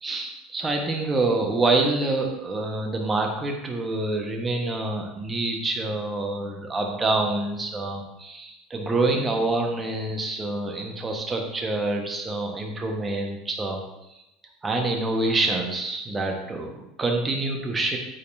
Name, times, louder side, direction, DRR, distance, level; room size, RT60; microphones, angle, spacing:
voice 1, 0.0-13.8 14.6-18.0, right 2 dB, 20° right, 2 dB, 1.3 m, -26 dB
8.3 x 4.3 x 2.7 m, 0.91 s
hypercardioid pair, 80°, 0 cm